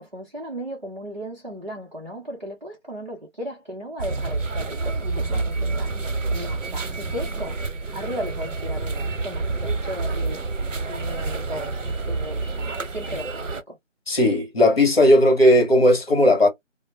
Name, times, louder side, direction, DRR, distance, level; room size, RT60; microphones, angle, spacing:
voice 1, 0.0-5.9 6.3-7.6 7.9-10.4 10.9-11.8 12.1-13.8, equal, 35° right, 0.6 m, -35 dB
sound 1, 4.0-13.6, right 3 dB, 85° right, 0.8 m, -28 dB
voice 2, 14.1-16.5, left 1 dB, 50° left, 1.2 m, -16 dB
2.4 x 2.0 x 3.0 m
figure-of-eight pair, 175°, 37 cm